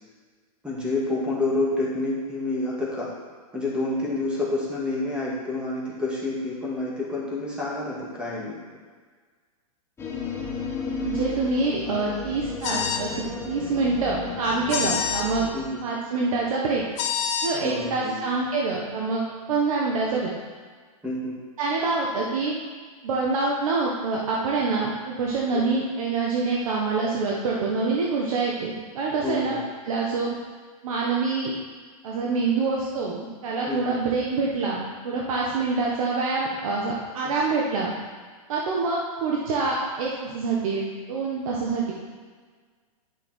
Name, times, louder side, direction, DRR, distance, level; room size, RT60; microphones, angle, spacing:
voice 1, 0.6-3.1 3.5-8.6 14.8-14.9 15.5-15.8 17.6-18.1 21.0-21.3 25.5-25.6 29.2-29.6 33.7-34.0 37.2-37.4, left 2 dB, 5° right, -6 dB, 2.1 m, -28 dB
sound 1, 10.0-15.5, left 4 dB, 15° left, 1.3 m, -33 dB
voice 2, 11.0-15.5 15.8-16.8 17.4-19.2 19.5-20.3 21.6-22.6 23.0-29.6 29.8-30.3 30.8-31.5 32.0-37.9 38.5-40.8 41.1-41.9, right 3 dB, 65° right, -3 dB, 1.4 m, -26 dB
sound 2, 12.6-13.1 14.7-15.3 17.0-17.5, left 7 dB, 55° left, 1.0 m, -26 dB
9.8 x 5.7 x 4.5 m, 1.5 s
hypercardioid pair, 140°, 19 cm